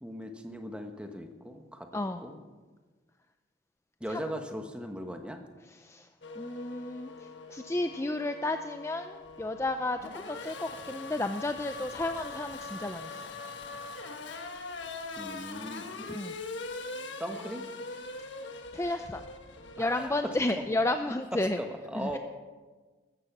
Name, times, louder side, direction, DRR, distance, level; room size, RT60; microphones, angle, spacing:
voice 1, 0.0-1.9 2.2-2.4 4.0-5.4 15.2-15.9 17.2-17.6 19.8-20.4 21.3-22.2, equal, 5° right, 5 dB, 1.2 m, -38 dB
voice 2, 5.7-6.1 6.4-13.2 16.0-16.4 18.7-19.2 19.8-21.6 22.0-22.2, left 2 dB, 15° left, 8 dB, 0.5 m, -32 dB
Race car auto racing / Accelerating revving vroom, 6.2-21.0, left 3 dB, 65° left, 1.4 m, -42 dB
15.5 x 13.5 x 6.0 m, 1.4 s
head